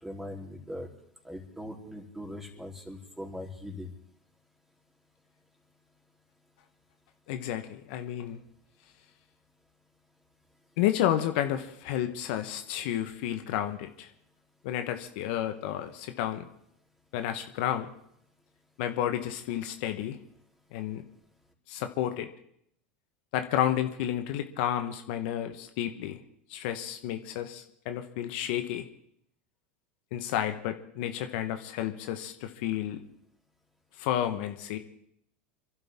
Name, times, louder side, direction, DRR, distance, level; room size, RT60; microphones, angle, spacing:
voice 1, 0.0-0.9 1.2-3.9, left 1 dB, 5° right, 0 dB, 3.6 m, -40 dB
voice 2, 7.3-8.4 10.8-14.1 14.6-16.5 17.1-17.9 18.8-20.2 20.7-21.0 21.7-22.3 23.3-26.2 26.5-28.8 30.1-33.0 34.0-34.8, left 11 dB, 70° left, 7 dB, 1.2 m, -31 dB
27.0 x 12.0 x 3.7 m, 0.72 s
hypercardioid pair, 95°, 6 cm